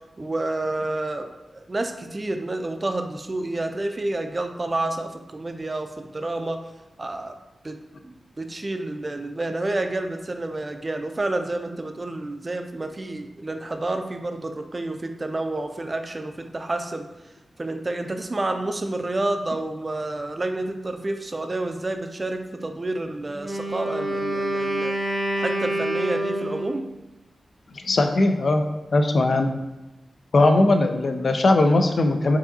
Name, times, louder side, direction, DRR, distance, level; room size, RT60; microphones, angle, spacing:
voice 1, 0.2-6.6 7.0-7.4 7.6-7.8 8.0-17.1 17.6-24.9 25.4-26.8, right 2 dB, 35° right, 6 dB, 0.4 m, -29 dB
Wind instrument woodwind instrument, 23.3-26.8, right 1 dB, 10° left, 1.2 m, -27 dB
voice 2, 27.7-28.6 28.9-29.6 30.3-32.4, left 2 dB, 65° left, 6 dB, 0.4 m, -19 dB
4.7 x 2.7 x 2.7 m, 1.0 s
cardioid pair, 60°, 0 cm